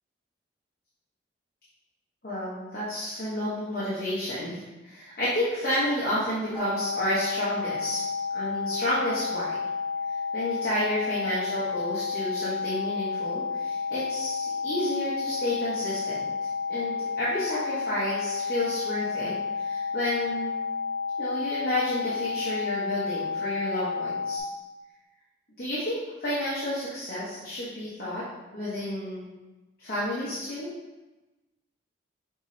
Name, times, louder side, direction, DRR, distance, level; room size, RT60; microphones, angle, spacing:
voice 1, 2.2-8.0 8.3-9.6 10.3-16.3 16.7-20.5 21.2-24.4 25.6-28.2 28.5-29.3 29.8-30.7, left 1 dB, 50° left, -10 dB, 1.1 m, -31 dB
sound 1, 6.5-24.4, left 5 dB, 5° right, 0.6 m, -31 dB
5.9 x 3.1 x 2.8 m, 1.1 s
head